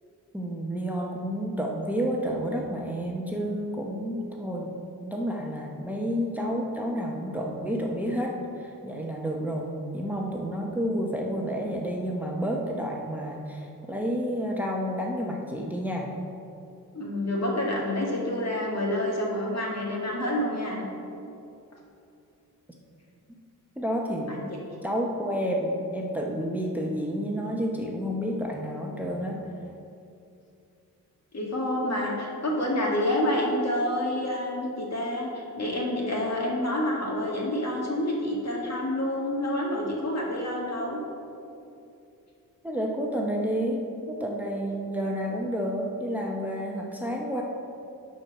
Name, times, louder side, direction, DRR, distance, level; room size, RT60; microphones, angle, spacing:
voice 1, 0.3-4.7 5.0-16.1 23.8-24.4 24.8-29.4 42.6-47.4, equal, 5° right, -1 dB, 0.9 m, -30 dB
voice 2, 16.9-20.8 24.3-24.4 31.3-41.0, left 1 dB, 50° left, -2 dB, 2.1 m, -28 dB
11.5 x 4.6 x 5.4 m, 2.7 s
cardioid pair, 100°, 34 cm